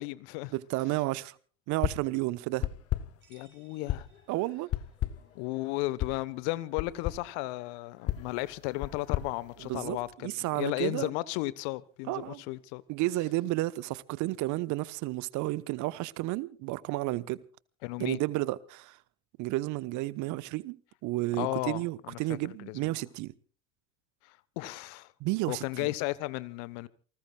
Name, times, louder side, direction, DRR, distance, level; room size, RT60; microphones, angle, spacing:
voice 1, 0.0-0.5 3.3-4.1 5.3-12.8 17.8-18.2 21.4-21.8 22.1-22.2 22.4-22.9 24.6-25.1 25.5-26.9, left 19 dB, 55° left, 1.2 m, -34 dB
voice 2, 0.5-1.4 1.7-2.7 4.3-4.7 9.6-11.1 12.1-12.4 12.9-17.4 18.0-19.0 19.4-20.8 21.0-23.3 25.2-25.9, right 18 dB, 50° right, 1.1 m, -32 dB
sound 1, 1.8-2.2 2.6-3.3 3.9-4.2 4.7-5.4 6.0-6.3 6.8-7.3 8.1-10.1, left 13 dB, 40° left, 1.0 m, -34 dB
sound 2, 2.1-9.8, left 6 dB, 80° left, 5.2 m, -62 dB
sound 3, 3.2-5.0, right 7 dB, 30° right, 7.8 m, -65 dB
28.5 x 19.5 x 2.4 m
figure-of-eight pair, 75°, 39 cm